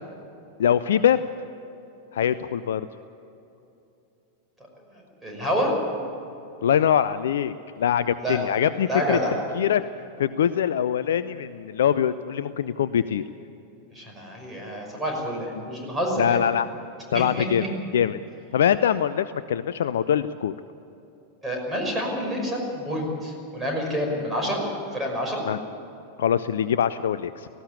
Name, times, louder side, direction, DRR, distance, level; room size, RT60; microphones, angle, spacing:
voice 1, 0.6-1.2 2.1-2.8 6.6-9.2 9.5-9.8 10.2-13.2 16.2-16.7 17.1-17.6 17.9-18.2 18.5-20.5 25.5-25.6 26.2-27.5, left 9 dB, 60° left, 14 dB, 0.5 m, -23 dB
voice 2, 4.9-5.7 8.2-8.4 8.9-9.3 13.9-16.5 17.1-17.4 21.4-24.6 24.9-25.4, equal, 10° right, 0 dB, 5.8 m, -28 dB
18.5 x 15.5 x 9.6 m, 2.9 s
figure-of-eight pair, 90°, 0 cm